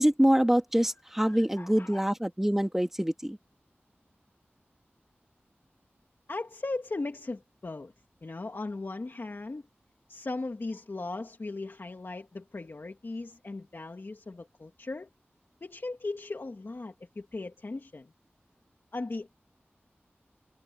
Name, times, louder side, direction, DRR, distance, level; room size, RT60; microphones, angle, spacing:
voice 1, 0.0-3.4, equal, 10° right, 2.6 m, -25 dB
voice 2, 1.3-2.1 6.3-7.9 8.2-9.6 10.1-15.1 15.6-18.1 18.9-19.3, left 3 dB, 60° left, 2.4 m, -38 dB
wide cardioid pair, 60°, 4 cm